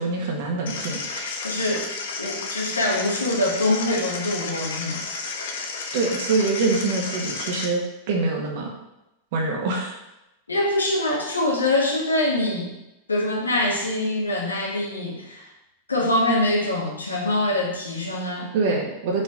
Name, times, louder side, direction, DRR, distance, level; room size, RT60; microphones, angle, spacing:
voice 1, 0.0-1.5 5.9-8.7 9.3-10.0 18.5-19.2, right 3 dB, 50° right, 0 dB, 1.7 m, -25 dB
sound 1, 0.7-7.7, left 4 dB, 60° left, 1.0 m, -32 dB
voice 2, 1.4-1.9 2.2-5.2 10.5-12.7 13.1-15.5 15.9-18.5, left 1 dB, 75° left, 0 dB, 1.6 m, -24 dB
5.5 x 5.1 x 5.3 m, 0.91 s
figure-of-eight pair, 90°, 0 cm